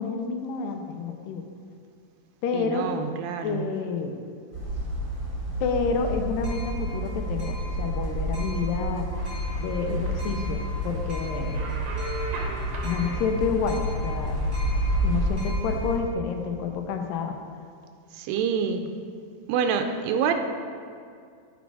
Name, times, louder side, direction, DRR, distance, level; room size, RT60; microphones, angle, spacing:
voice 1, 0.0-1.4 2.4-2.9 3.4-4.2 5.6-9.1 9.6-11.6 12.8-14.4 15.0-17.4, left 5 dB, 80° left, 5 dB, 2.2 m, -29 dB
voice 2, 2.5-3.7 18.2-18.9 19.5-20.3, right 7 dB, 85° right, 6 dB, 2.3 m, -27 dB
sound 1, 4.5-16.0, right 1 dB, 35° right, 0.7 m, -29 dB
sound 2, 9.1-15.3, right 1 dB, 70° right, 1.5 m, -36 dB
10.0 x 4.1 x 4.7 m, 2.3 s
omnidirectional pair, 4.1 m